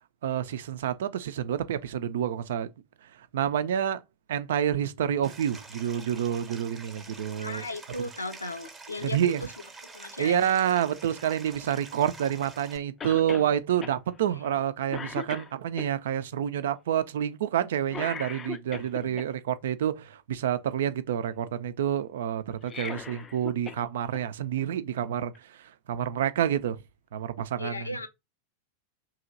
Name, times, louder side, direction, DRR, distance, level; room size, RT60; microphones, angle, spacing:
voice 1, 0.2-2.7 3.3-4.0 4.3-7.6 9.0-9.4 10.2-26.8 27.1-28.1, right 9 dB, 60° right, 0.4 m, -28 dB
Stream, 5.2-12.8, right 3 dB, 15° right, 0.8 m, -47 dB
voice 2, 7.4-9.5 9.9-10.5 13.2-13.5 14.3-14.6 19.0-19.3 27.6-28.1, left 2 dB, 80° left, 0.6 m, -37 dB
Cough, 13.0-13.5 13.8-14.0 14.4-14.6 14.9-15.9 17.9-19.3 22.5-23.8 24.1-24.2 25.3-25.4, left 6 dB, 20° left, 0.4 m, -38 dB
2.9 x 2.7 x 3.8 m
figure-of-eight pair, 90°, 0 cm